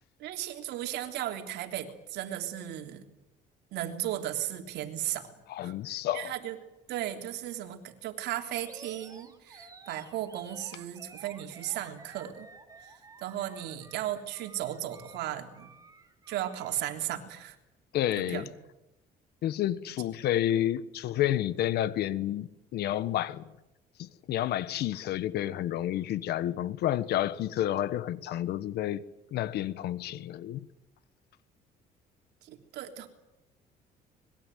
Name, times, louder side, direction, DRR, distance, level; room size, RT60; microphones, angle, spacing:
voice 1, 0.2-3.0 3.7-5.3 5.6-6.6 6.9-12.5 12.8-12.9 13.2-15.7 16.3-17.6 18.3-18.5 32.4-33.1, right 12 dB, 80° right, 3.3 m, -36 dB
voice 2, 5.5-6.3 17.9-18.4 19.4-23.5 24.0-29.0 29.3-30.7, left 12 dB, 75° left, 1.3 m, -30 dB
Animal, 8.6-16.8, right 3 dB, 20° right, 3.4 m, -52 dB
25.5 x 21.0 x 9.3 m
cardioid pair, 110°, 17 cm